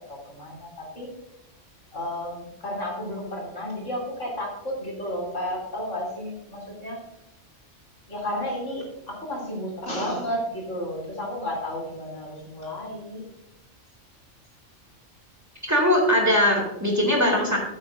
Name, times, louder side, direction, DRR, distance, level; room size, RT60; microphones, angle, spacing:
voice 1, 0.1-1.1 1.9-7.0 8.1-13.2, left 1 dB, 80° left, -4 dB, 3.4 m, -32 dB
voice 2, 15.7-17.6, left 1 dB, 15° right, -3 dB, 2.2 m, -20 dB
13.0 x 8.5 x 2.6 m, 0.86 s
omnidirectional pair, 1.3 m